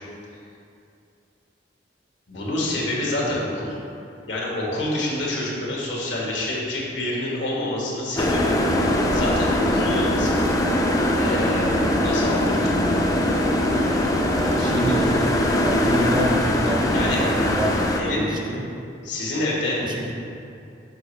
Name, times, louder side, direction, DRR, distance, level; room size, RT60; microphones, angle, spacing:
voice 1, 2.3-3.7 4.3-8.6 9.1-10.3 11.2-12.8 16.9-17.2 18.0-18.3 19.0-19.8, left 1 dB, 80° left, -4 dB, 1.4 m, -27 dB
sound 1, 8.2-18.0, left 1 dB, 20° left, 0.4 m, -21 dB
voice 2, 14.4-17.8 18.0-18.6 19.8-20.1, equal, 25° right, -1 dB, 0.7 m, -28 dB
6.6 x 5.0 x 3.2 m, 2.6 s
head